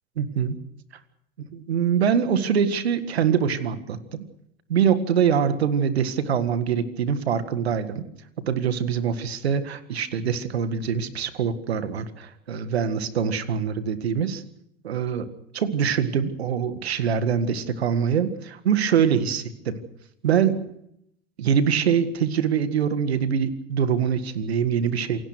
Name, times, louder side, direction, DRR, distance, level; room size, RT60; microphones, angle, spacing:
voice 1, 0.2-0.6 1.5-4.2 4.7-8.0 8.5-14.4 14.8-15.3 15.5-19.8 20.2-20.6 21.4-25.2, right 7 dB, 85° right, 12 dB, 1.8 m, -24 dB
28.0 x 18.0 x 6.2 m, 0.74 s
hypercardioid pair, 75°, 31 cm